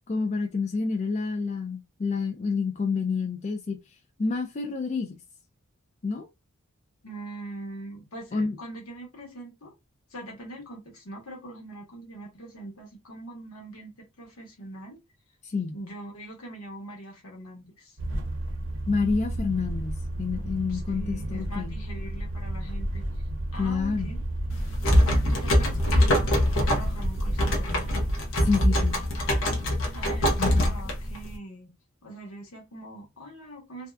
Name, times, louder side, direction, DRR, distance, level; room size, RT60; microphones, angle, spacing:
voice 1, 0.1-3.8 4.2-5.2 6.0-6.3 8.3-8.6 15.4-15.7 18.9-21.8 23.6-24.1 28.4-29.0 30.4-30.8, left 4 dB, 30° left, 0.3 m, -28 dB
voice 2, 7.0-9.7 10.1-15.0 15.7-18.0 20.7-23.2 23.5-24.2 25.0-28.1 29.9-31.7 32.0-33.9, right 1 dB, 85° left, 1.1 m, -42 dB
sound 1, 18.0-28.2, right 1 dB, 60° right, 0.7 m, -32 dB
sound 2, 24.5-31.3, equal, 65° left, 0.7 m, -24 dB
2.6 x 2.2 x 2.3 m
head